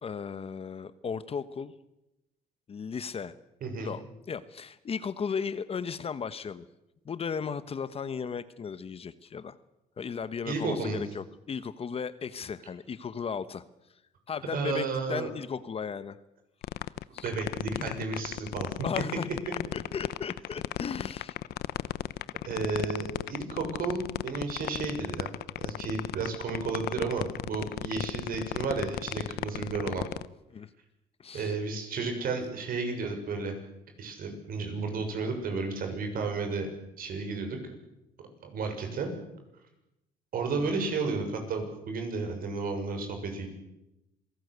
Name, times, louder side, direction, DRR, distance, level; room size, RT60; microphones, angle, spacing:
voice 1, 0.0-1.7 2.7-3.4 3.8-6.6 7.0-9.6 10.0-13.6 14.3-16.2 17.1-17.3 17.8-18.0 18.8-19.3 19.7-21.3 29.5-29.7 30.5-30.7 31.2-31.5 40.6-40.8, left 6 dB, 35° left, 14 dB, 1.1 m, -36 dB
voice 2, 3.6-3.9 10.4-11.0 14.5-15.3 17.2-18.9 22.4-25.3 25.6-30.0 31.3-33.5 34.0-36.7 37.0-37.6 38.4-39.1 40.3-43.5, right 4 dB, 60° right, 5 dB, 6.7 m, -32 dB
sound 1, 16.6-30.3, left 14 dB, 70° left, 0.8 m, -34 dB
26.5 x 18.0 x 8.2 m, 0.92 s
cardioid pair, 110°, 17 cm